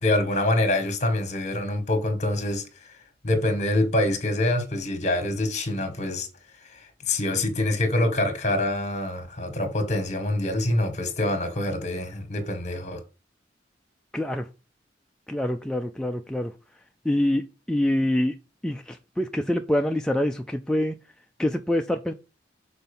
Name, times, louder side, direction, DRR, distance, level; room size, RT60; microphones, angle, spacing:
voice 1, 0.0-2.6 3.2-6.3 6.6-13.0, left 1 dB, 40° left, 1.6 m, -25 dB
voice 2, 14.1-14.5 15.3-16.5 17.0-18.4 18.6-21.0 21.4-22.1, left 1 dB, 5° left, 0.4 m, -25 dB
6.0 x 4.4 x 5.4 m
head